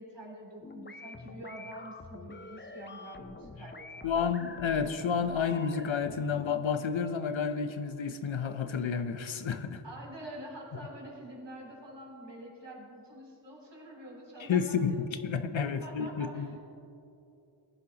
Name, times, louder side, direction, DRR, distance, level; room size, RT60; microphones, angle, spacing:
voice 1, 0.0-4.1 9.8-15.0 15.6-16.5, right 1 dB, 60° right, -3 dB, 3.1 m, -46 dB
sound 1, 0.6-6.6, left 3 dB, 25° left, 0.6 m, -47 dB
voice 2, 4.0-9.8 14.4-16.6, left 6 dB, 70° left, 10 dB, 0.8 m, -31 dB
19.5 x 10.0 x 2.9 m, 2.8 s
wide cardioid pair, 60°, 48 cm